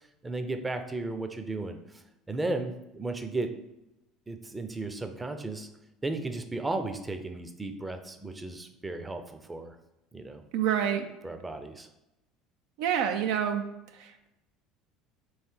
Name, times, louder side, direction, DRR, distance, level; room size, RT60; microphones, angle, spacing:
voice 1, 0.2-1.8 2.3-3.5 4.3-5.7 6.0-9.8 10.1-10.4 11.2-11.9, right 2 dB, 15° right, 7 dB, 0.6 m, -34 dB
voice 2, 10.5-11.1 12.8-13.6 13.9-14.3, right 9 dB, 70° right, 5 dB, 0.4 m, -27 dB
3.2 x 3.2 x 4.5 m, 0.93 s
hypercardioid pair, 70°, 0 cm